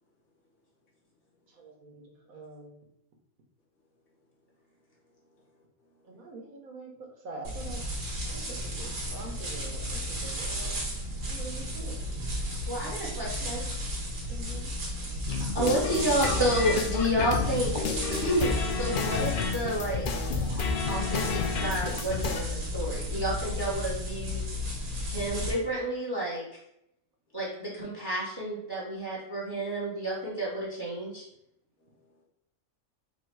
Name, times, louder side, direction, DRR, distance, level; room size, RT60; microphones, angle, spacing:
voice 1, 1.5-2.8 6.0-6.9 7.2-7.8 8.3-10.9 11.2-12.0 14.3-14.7, right 3 dB, 75° right, 1 dB, 1.4 m, -44 dB
voice 2, 5.0-6.3 24.8-25.2 31.8-32.2, left 1 dB, 85° left, -3 dB, 1.7 m, -68 dB
Leaves in movement, 7.4-25.5, left 1 dB, 60° right, 1.6 m, -34 dB
voice 3, 12.7-13.6 15.5-17.7 18.1-20.0 20.9-24.4 25.1-26.4 27.3-31.2, right 1 dB, 20° right, -5 dB, 1.0 m, -30 dB
Music Pieces, 15.3-22.4, left 5 dB, 70° left, 0.5 m, -31 dB
4.4 x 2.4 x 4.5 m, 0.78 s
omnidirectional pair, 1.5 m